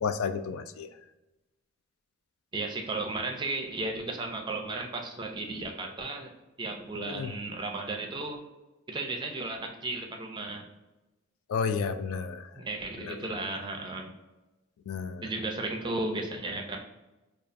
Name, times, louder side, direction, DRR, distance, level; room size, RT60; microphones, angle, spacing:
voice 1, 0.0-0.9 7.1-7.3 11.5-12.5 13.0-13.2 14.9-15.3, left 5 dB, 85° left, 10 dB, 0.3 m, -31 dB
voice 2, 2.5-6.3 6.6-8.4 8.9-10.6 12.6-14.1 15.2-16.8, right 2 dB, 20° right, 2 dB, 0.5 m, -34 dB
5.2 x 2.4 x 2.5 m, 1.0 s
head